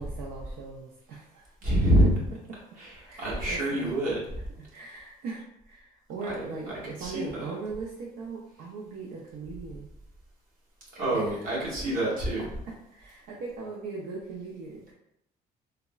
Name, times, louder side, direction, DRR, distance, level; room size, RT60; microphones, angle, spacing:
voice 1, 0.0-1.5 3.0-3.9 4.7-9.9 11.1-11.4 12.9-14.9, right 4 dB, 80° right, -3 dB, 0.5 m, -39 dB
voice 2, 1.6-2.1 2.8-4.2 6.4-6.5 7.0-7.5 10.9-12.5, right 1 dB, 55° right, -6 dB, 1.3 m, -26 dB
3.4 x 2.0 x 2.3 m, 0.80 s
cardioid pair, 110°, 17 cm